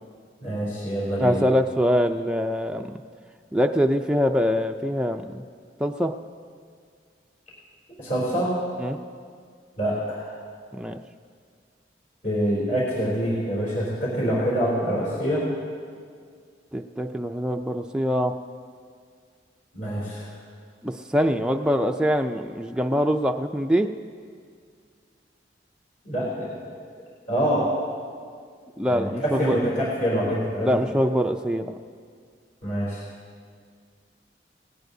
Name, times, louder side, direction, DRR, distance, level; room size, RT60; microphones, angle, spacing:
voice 1, 0.4-1.4 8.0-8.6 9.8-10.3 12.2-15.4 19.7-20.3 26.0-26.7 27.3-27.8 28.9-30.9 32.6-33.0, equal, 45° left, -7 dB, 3.4 m, -26 dB
voice 2, 1.2-3.0 3.5-5.4 5.8-6.1 8.8-9.0 10.7-11.0 16.7-18.3 20.8-23.9 28.8-29.6 30.6-31.7, equal, 5° right, 3 dB, 0.4 m, -24 dB
18.5 x 17.0 x 2.7 m, 2.1 s
head